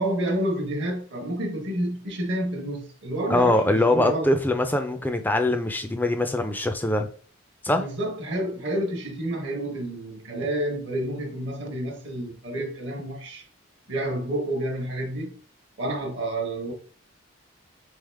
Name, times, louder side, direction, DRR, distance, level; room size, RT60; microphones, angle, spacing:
voice 1, 0.0-4.3 7.8-13.4 13.9-15.4 15.8-16.7, right 1 dB, 60° right, 0.9 m, -29 dB
voice 2, 3.3-7.1 7.6-7.9, left 1 dB, 10° left, 0.3 m, -23 dB
3.7 x 3.5 x 3.3 m
head